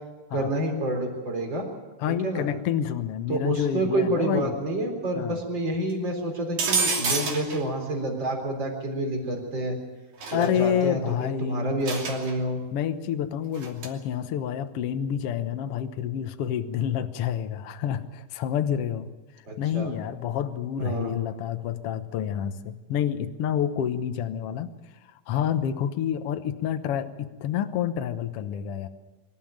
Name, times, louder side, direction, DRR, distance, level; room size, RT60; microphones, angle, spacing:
voice 1, 0.3-1.7 2.2-2.5 3.3-9.8 10.3-12.6 19.5-19.9 20.8-21.2, right 1 dB, 30° right, 3 dB, 4.4 m, -28 dB
voice 2, 2.0-4.5 5.1-5.4 10.3-11.9 12.7-19.1 19.6-24.7 25.3-28.9, left 9 dB, 70° left, 9 dB, 1.4 m, -28 dB
sound 1, 6.6-7.6 10.2-10.5 11.9-12.3 13.5-13.9, right 4 dB, 55° right, 4.0 m, -27 dB
24.0 x 13.5 x 8.9 m, 1.2 s
omnidirectional pair, 4.1 m